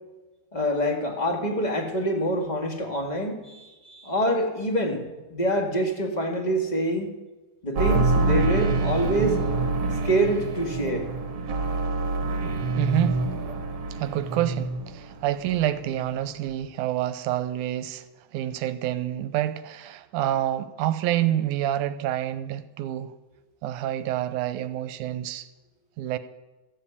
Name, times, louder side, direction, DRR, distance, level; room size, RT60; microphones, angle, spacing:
voice 1, 0.5-5.0 5.3-7.1 7.6-9.5 10.0-11.1, right 1 dB, 25° left, 3 dB, 1.0 m, -26 dB
sound 1, 7.8-15.2 15.5-16.2 16.4-16.5, right 3 dB, 55° right, 2.2 m, -26 dB
voice 2, 12.8-13.2 14.0-18.1 18.3-23.1 23.6-25.5 26.0-26.2, right 12 dB, 85° right, 13 dB, 2.1 m, -27 dB
14.0 x 7.8 x 8.4 m, 1.2 s
omnidirectional pair, 3.6 m